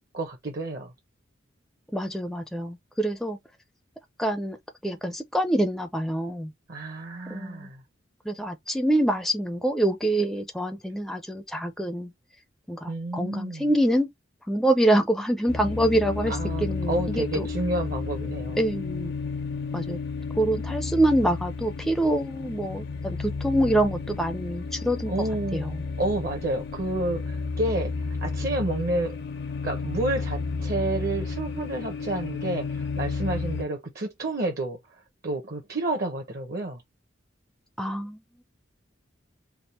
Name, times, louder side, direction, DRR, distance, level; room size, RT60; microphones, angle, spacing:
voice 1, 0.1-0.9 6.7-7.8 12.9-13.7 16.3-18.6 25.1-25.7 26.0-29.2 29.6-36.8, right 2 dB, 50° right, 0.8 m, -30 dB
voice 2, 1.9-3.4 4.2-4.6 4.8-6.5 7.3-7.7 8.3-12.1 12.7-14.1 14.5-17.5 18.6-19.1 19.7-20.0 20.4-25.3 25.5-25.8 37.8-38.2, right 1 dB, ahead, 0.4 m, -25 dB
sound 1, 15.5-33.7, left 4 dB, 55° left, 0.5 m, -32 dB
3.5 x 2.1 x 4.1 m
head